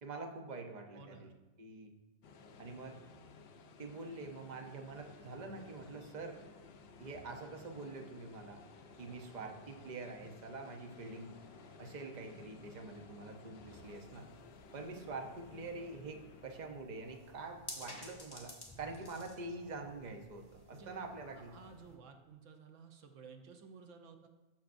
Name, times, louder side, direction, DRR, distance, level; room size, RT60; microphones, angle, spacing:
voice 1, 0.0-1.3 1.6-1.9 2.6-3.0 3.8-6.4 7.0-8.6 9.0-11.4 11.8-14.3 14.7-21.5, right 3 dB, 40° right, 3 dB, 0.8 m, -46 dB
voice 2, 0.9-1.3 20.7-20.9 21.2-24.3, right 5 dB, 85° right, 5 dB, 1.1 m, -55 dB
sound 1, 2.2-16.7, left 4 dB, 60° left, 0.8 m, -57 dB
sound 2, 4.8-22.2, left 1 dB, 20° right, 2.9 m, -64 dB
sound 3, 13.8-22.0, left 1 dB, 20° left, 1.3 m, -54 dB
13.5 x 5.8 x 2.6 m, 1.1 s
omnidirectional pair, 1.2 m